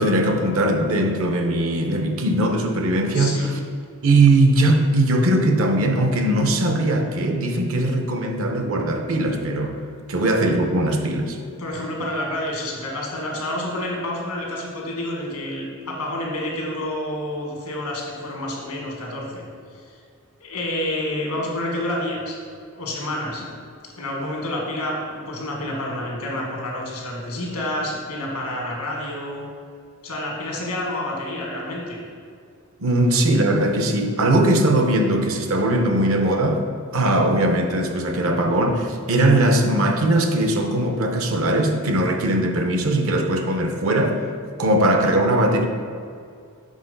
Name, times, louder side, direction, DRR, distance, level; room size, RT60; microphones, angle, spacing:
voice 1, 0.0-3.4 4.0-9.8 10.1-11.4 32.8-36.6 36.9-44.2 44.6-45.7, right 1 dB, 65° right, 4 dB, 0.7 m, -20 dB
voice 2, 3.1-3.5 11.6-19.4 19.8-20.0 20.4-22.4 22.7-23.4 24.0-29.4 30.0-32.0, left 1 dB, 90° left, -1 dB, 1.6 m, -29 dB
6.6 x 3.9 x 5.2 m, 2.2 s
head